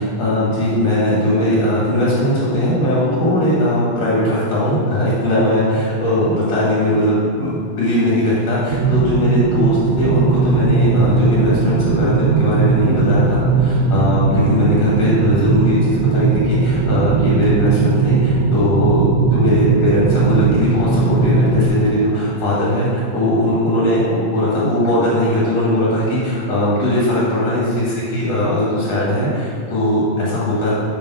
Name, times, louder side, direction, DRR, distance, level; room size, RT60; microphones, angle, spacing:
voice 1, 0.0-30.7, left 1 dB, 50° left, -7 dB, 2.0 m, -18 dB
sound 1, 8.7-21.7, right 4 dB, 80° right, 2.4 m, -18 dB
6.9 x 6.3 x 5.5 m, 2.1 s
omnidirectional pair, 5.2 m